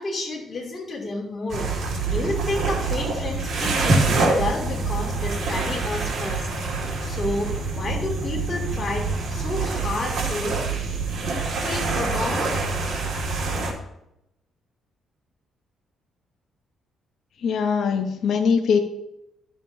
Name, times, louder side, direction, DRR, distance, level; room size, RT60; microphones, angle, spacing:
voice 1, 0.0-1.7 2.1-6.5 6.8-10.6 11.6-12.5, left 2 dB, 40° left, -1 dB, 2.8 m, -30 dB
sound 1, 1.5-13.7, right 3 dB, 55° right, 2.2 m, -25 dB
voice 2, 17.4-18.8, left 6 dB, 65° left, 5 dB, 0.9 m, -21 dB
12.0 x 7.0 x 2.8 m, 0.85 s
cardioid pair, 90°, 0 cm